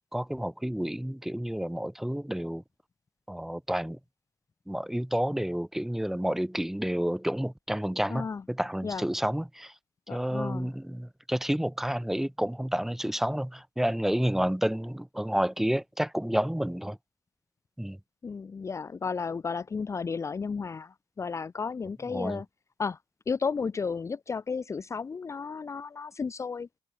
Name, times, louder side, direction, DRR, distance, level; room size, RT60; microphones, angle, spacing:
voice 1, 0.1-2.6 3.3-4.0 4.7-9.7 10.1-17.0 17.8-18.0 22.1-22.4, equal, 5° right, 1.6 m, -30 dB
voice 2, 8.1-8.4 8.8-9.1 10.1-10.7 18.2-22.5 22.8-23.0 23.3-26.7, left 5 dB, 30° left, 0.7 m, -33 dB
open air
cardioid pair, 105°, 10 cm